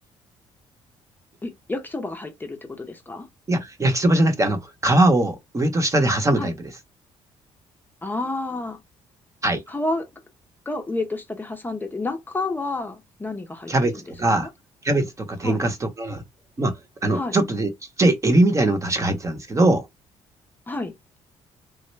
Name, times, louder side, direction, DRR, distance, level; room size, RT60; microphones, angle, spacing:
voice 1, 1.4-3.3 6.4-6.5 8.0-8.8 9.7-10.1 10.7-14.5 15.4-15.6 17.1-17.4 20.7-20.9, left 2 dB, 15° left, 0.7 m, -30 dB
voice 2, 3.5-6.7 9.4-9.6 13.7-13.9 14.2-14.5 14.8-16.2 16.6-16.7 17.0-17.7 18.0-19.8, right 1 dB, 25° right, 0.9 m, -21 dB
3.1 x 2.1 x 3.2 m
cardioid pair, 90°, 12 cm